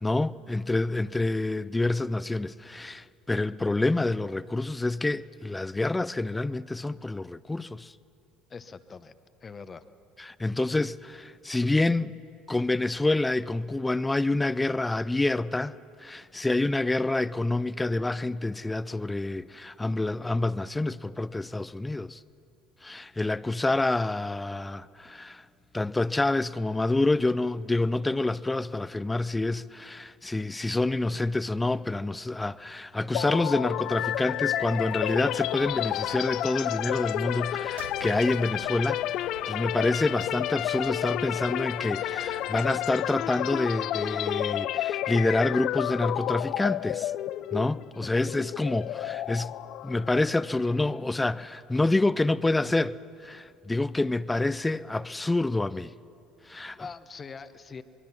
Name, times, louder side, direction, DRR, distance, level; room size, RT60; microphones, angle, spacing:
voice 1, 0.0-7.9 10.2-12.2 12.5-15.8 16.0-22.2 22.8-25.4 25.7-39.0 39.5-47.1 47.5-49.5 49.8-52.9 53.2-55.9 56.5-56.8, left 2 dB, 15° left, 0.5 m, -27 dB
voice 2, 8.5-9.1 9.4-9.8 56.4-57.8, left 5 dB, 30° left, 1.0 m, -43 dB
sound 1, 33.1-50.9, left 13 dB, 60° left, 0.4 m, -31 dB
sound 2, 33.8-42.8, right 8 dB, 85° right, 0.6 m, -50 dB
24.0 x 21.5 x 5.9 m
hypercardioid pair, 65°, 0 cm